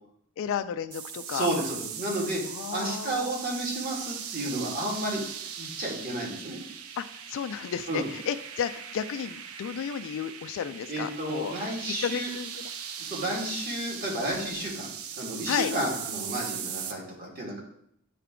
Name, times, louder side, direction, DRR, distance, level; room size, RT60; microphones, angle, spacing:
voice 1, 0.4-1.5 2.5-3.3 7.0-11.5 12.0-12.5 15.5-15.7, left 8 dB, 65° left, 10 dB, 0.3 m, -32 dB
syth winds, 0.9-16.9, right 8 dB, 70° right, 0.6 m, -39 dB
voice 2, 1.3-2.4 2.7-5.2 5.6-6.6 7.9-8.0 10.9-12.3 13.0-17.6, right 1 dB, 45° right, -2 dB, 1.9 m, -32 dB
9.2 x 3.4 x 3.7 m, 0.70 s
head